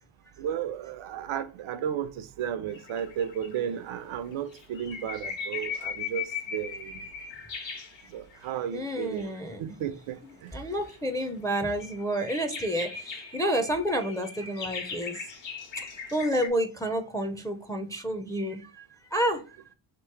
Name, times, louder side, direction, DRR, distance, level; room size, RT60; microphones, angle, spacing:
voice 1, 0.4-7.1 8.1-9.3 9.6-10.6, right 9 dB, 90° right, 0.6 m, -34 dB
sound 1, 2.7-3.7 4.3-8.5 8.9-9.5 10.3-16.5, left 6 dB, 70° left, 1.2 m, -39 dB
voice 2, 8.7-9.6 10.5-15.2 16.1-19.4, right 1 dB, 10° left, 0.4 m, -29 dB
3.1 x 3.0 x 4.4 m
cardioid pair, 105°, 47 cm